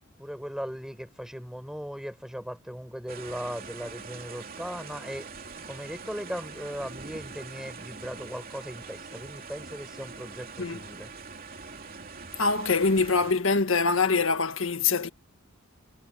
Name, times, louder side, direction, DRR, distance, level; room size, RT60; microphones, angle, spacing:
voice 1, 0.2-5.3 5.6-11.1, equal, 5° right, 4.8 m, -38 dB
sound 1, 3.1-13.3, right 4 dB, 45° right, 3.1 m, -43 dB
voice 2, 12.4-15.1, left 4 dB, 75° left, 1.7 m, -24 dB
head